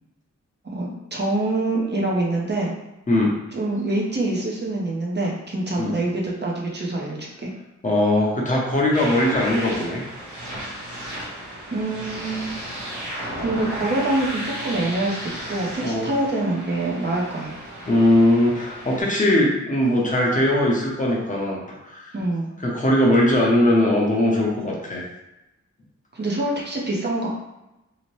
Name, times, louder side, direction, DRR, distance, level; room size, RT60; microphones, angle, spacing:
voice 1, 0.6-2.7 3.5-7.5 11.7-12.5 13.2-17.5 19.4-19.5 22.1-22.5 26.1-27.3, right 2 dB, 35° right, -2 dB, 0.6 m, -25 dB
voice 2, 7.8-10.0 15.8-16.1 17.9-22.1 22.6-25.0, left 1 dB, 25° left, -3 dB, 0.7 m, -20 dB
sound 1, 8.9-19.0, right 1 dB, 70° right, 1.3 m, -34 dB
2.7 x 2.1 x 3.0 m, 0.95 s
wide cardioid pair, 100°, 30 cm